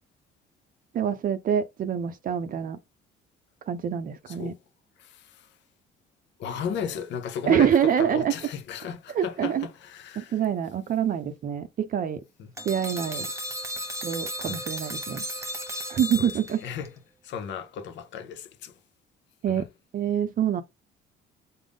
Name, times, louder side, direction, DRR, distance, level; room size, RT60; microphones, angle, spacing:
voice 1, 0.9-2.8 3.7-4.5 7.5-8.3 9.1-9.7 10.2-12.2 12.6-13.3 14.0-15.2 15.9-16.6 19.4-19.6 19.9-20.6, right 9 dB, 45° right, 0.5 m, -26 dB
voice 2, 4.3-4.6 5.0-5.5 6.4-10.4 12.4-12.5 14.4-14.6 16.2-16.3 16.6-16.9 17.2-18.7 19.5-19.7, left 7 dB, 65° left, 0.7 m, -35 dB
sound 1, 12.6-16.9, equal, 15° right, 1.0 m, -34 dB
3.8 x 2.0 x 3.4 m
supercardioid pair, 90°, 20 cm